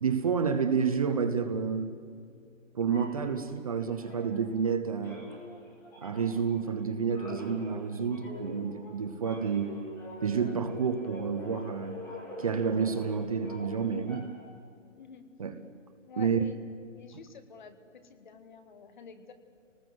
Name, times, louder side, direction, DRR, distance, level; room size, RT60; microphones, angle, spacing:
voice 1, 0.0-1.9 2.7-5.3 6.0-9.7 10.2-12.0 12.4-14.3 15.4-15.6 16.2-16.5, right 6 dB, 30° right, 9 dB, 0.9 m, -29 dB
sound 1, 2.9-4.7 5.0-14.5, left 1 dB, 5° left, 2.4 m, -44 dB
voice 2, 15.0-15.3 16.1-16.6 16.9-19.3, left 5 dB, 40° left, 9 dB, 1.8 m, -49 dB
29.0 x 19.5 x 7.9 m, 2.3 s
hypercardioid pair, 165°, 38 cm